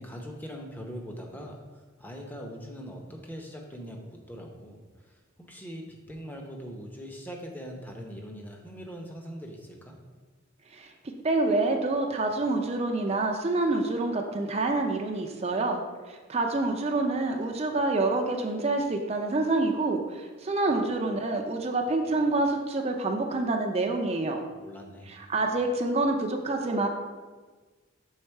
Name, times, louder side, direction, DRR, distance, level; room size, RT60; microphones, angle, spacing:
voice 1, 0.0-10.0 24.5-25.1, equal, 10° left, 1 dB, 0.7 m, -42 dB
voice 2, 11.2-15.8 16.1-24.4 25.1-26.9, right 2 dB, 30° right, 3 dB, 0.5 m, -27 dB
6.5 x 3.9 x 4.5 m, 1.4 s
head